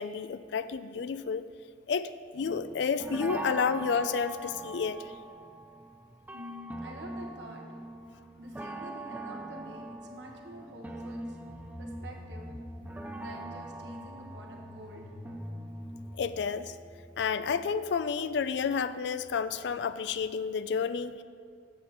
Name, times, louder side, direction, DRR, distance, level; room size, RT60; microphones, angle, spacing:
voice 1, 0.0-1.5 1.9-5.1 16.2-16.8 17.2-21.2, left 6 dB, 70° left, 13 dB, 0.3 m, -30 dB
sound 1, 2.4-16.5, right 2 dB, 10° right, 0.3 m, -43 dB
voice 2, 6.3-7.7 8.4-11.4 11.8-12.5 13.1-15.1, equal, 75° right, 0 dB, 1.3 m, -47 dB
sound 2, 11.5-20.3, left 1 dB, 30° left, 0.8 m, -48 dB
7.6 x 7.4 x 4.3 m, 2.2 s
head